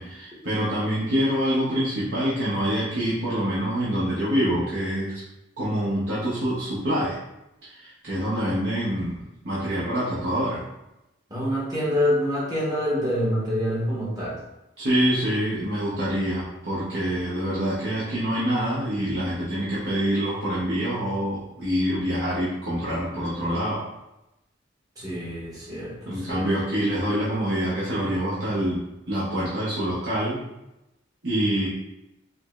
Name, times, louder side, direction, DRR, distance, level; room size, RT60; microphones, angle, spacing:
voice 1, 0.0-5.2 5.6-7.1 7.6-10.6 14.8-23.8 26.1-30.4 31.2-31.7, equal, 55° right, -9 dB, 0.8 m, -26 dB
voice 2, 11.3-14.4 25.0-26.5, equal, 20° right, -7 dB, 0.9 m, -26 dB
4.7 x 2.0 x 2.3 m, 0.92 s
head